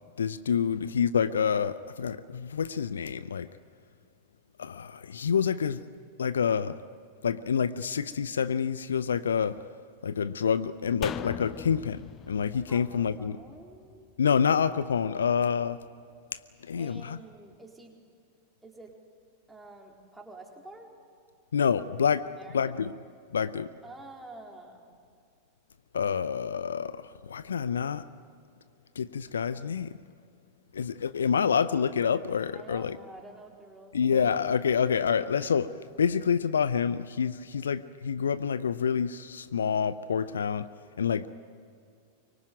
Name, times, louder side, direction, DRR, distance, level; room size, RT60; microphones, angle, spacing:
voice 1, 0.2-3.5 4.6-5.8 6.2-6.8 7.2-9.6 10.0-12.0 12.3-13.4 14.2-15.8 16.6-17.2 21.5-22.3 22.5-22.9 23.3-23.7 25.9-28.0 29.0-29.9 30.7-33.0 33.9-40.7 41.0-41.3, left 7 dB, 70° left, 0.6 m, -27 dB
sound 1, 11.0-14.4 14.7-14.8, left 9 dB, 30° left, 0.6 m, -41 dB
voice 2, 13.2-14.2 16.8-18.0 18.6-19.0 19.5-20.9 22.3-22.8 23.8-24.9 32.5-34.2, right 2 dB, 5° right, 4.2 m, -48 dB
24.5 x 23.5 x 9.3 m
figure-of-eight pair, 90°, 0 cm